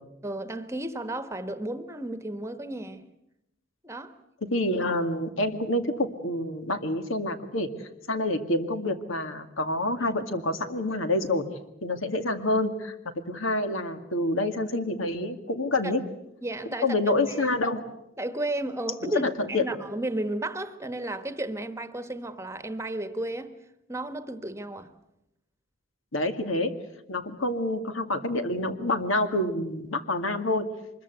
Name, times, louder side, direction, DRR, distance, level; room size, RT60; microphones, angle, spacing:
voice 1, 0.2-3.1 3.8-4.1 15.8-15.9 16.4-17.0 17.3-17.5 18.2-23.5 23.9-24.9, right 1 dB, 15° right, 1.2 m, -33 dB
voice 2, 4.5-7.7 8.1-11.4 11.8-12.9 13.3-16.0 16.8-17.8 19.2-19.7 26.1-26.7 27.1-30.6, left 2 dB, 85° left, 2.1 m, -27 dB
24.5 x 21.5 x 8.0 m
head